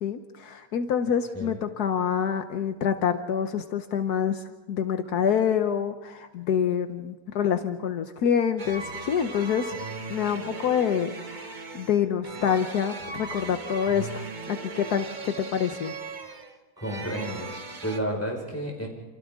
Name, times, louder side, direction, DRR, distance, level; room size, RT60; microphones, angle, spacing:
voice 1, 0.0-9.7 10.1-15.9, left 8 dB, 75° left, 7 dB, 1.5 m, -27 dB
sound 1, 8.6-18.0, right 3 dB, 30° right, 1.3 m, -38 dB
voice 2, 16.8-18.9, right 1 dB, 10° left, -1 dB, 5.2 m, -32 dB
28.5 x 28.0 x 3.7 m, 1.1 s
omnidirectional pair, 1.7 m